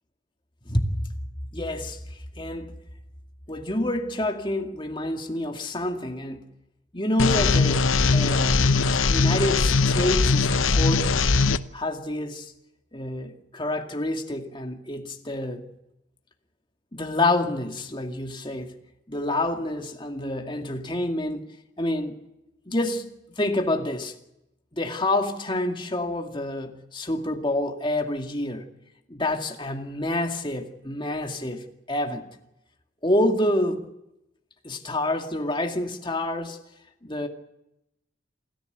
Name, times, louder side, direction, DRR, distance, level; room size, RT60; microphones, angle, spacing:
voice 1, 1.5-2.7 3.5-6.4 6.9-8.6 9.1-11.1 11.7-12.5 12.9-15.6 16.9-18.7 19.1-21.5 21.8-22.2 22.7-23.1 23.4-24.1 24.7-28.7 29.1-32.3 33.0-33.9 34.6-36.6 37.0-37.3, left 1 dB, 25° left, 2.2 m, -28 dB
sound 1, 7.2-11.6, left 4 dB, 85° left, 0.8 m, -20 dB
27.5 x 14.5 x 8.1 m
head